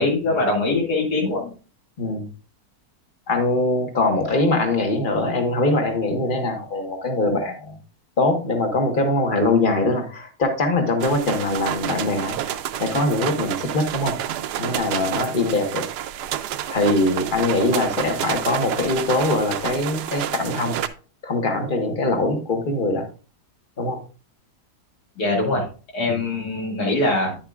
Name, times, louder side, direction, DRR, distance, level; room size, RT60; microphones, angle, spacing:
voice 1, 0.0-1.5 25.2-25.6 25.9-27.4, left 2 dB, 80° left, -2 dB, 2.9 m, -22 dB
voice 2, 2.0-2.3 3.3-7.8 8.2-12.4 12.8-14.1 14.6-15.8 16.7-20.8 21.2-23.1 23.8-24.0 26.1-26.2, left 2 dB, 35° left, 5 dB, 1.4 m, -22 dB
sound 1, 11.0-20.9, right 11 dB, 90° right, 1.2 m, -29 dB
9.9 x 7.4 x 2.4 m, 0.36 s
omnidirectional pair, 1.7 m